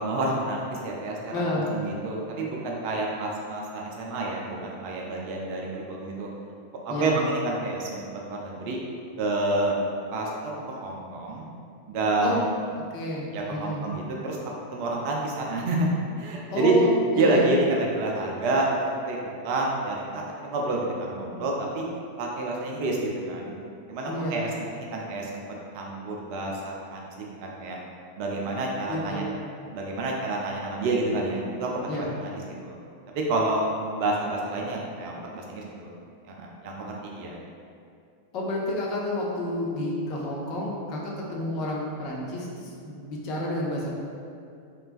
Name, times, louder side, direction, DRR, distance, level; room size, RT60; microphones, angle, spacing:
voice 1, 0.0-6.3 6.8-8.8 9.2-9.8 10.1-10.3 10.7-11.5 11.9-12.5 13.3-14.4 14.7-15.9 16.2-16.7 17.2-19.2 19.4-21.8 22.2-23.5 23.9-25.4 25.7-27.1 27.4-27.8 28.2-29.3 29.7-32.4 32.7-32.8 33.1-33.7 33.9-35.9 36.3-37.4, right 2 dB, 45° right, -1 dB, 0.5 m, -28 dB
voice 2, 1.3-1.7 6.9-7.1 12.2-12.4 12.9-13.9 16.5-17.5 24.1-24.4 28.9-29.3 31.9-32.1 38.3-43.9, left 1 dB, 40° left, -3 dB, 0.6 m, -30 dB
3.3 x 2.9 x 2.4 m, 2.4 s
figure-of-eight pair, 90°, 0 cm